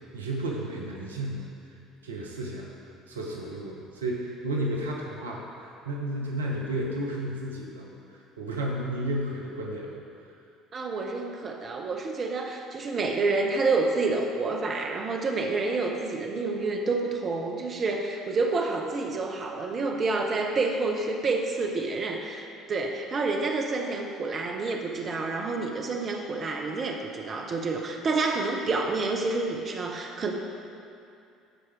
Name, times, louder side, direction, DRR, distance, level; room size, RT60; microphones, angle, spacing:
voice 1, 0.1-1.5 2.0-2.7 3.1-10.0, right 1 dB, 75° right, -2 dB, 0.9 m, -32 dB
voice 2, 10.7-30.3, right 3 dB, 35° right, 2 dB, 0.9 m, -28 dB
13.5 x 4.8 x 4.7 m, 2.5 s
figure-of-eight pair, 55°, 0 cm